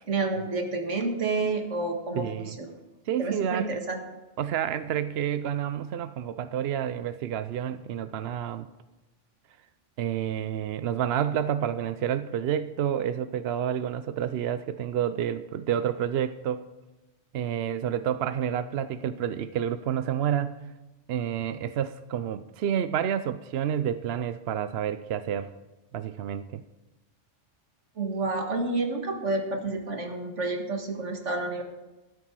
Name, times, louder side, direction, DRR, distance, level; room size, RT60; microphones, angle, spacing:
voice 1, 0.1-2.7 3.2-4.0 28.0-31.6, right 3 dB, 85° right, 3 dB, 2.1 m, -29 dB
voice 2, 2.2-2.6 3.1-3.8 4.4-8.7 10.0-16.6 17.3-20.6 21.1-25.5 25.9-26.6, right 9 dB, 65° right, 12 dB, 0.8 m, -29 dB
13.0 x 11.5 x 4.7 m, 1.1 s
omnidirectional pair, 1.2 m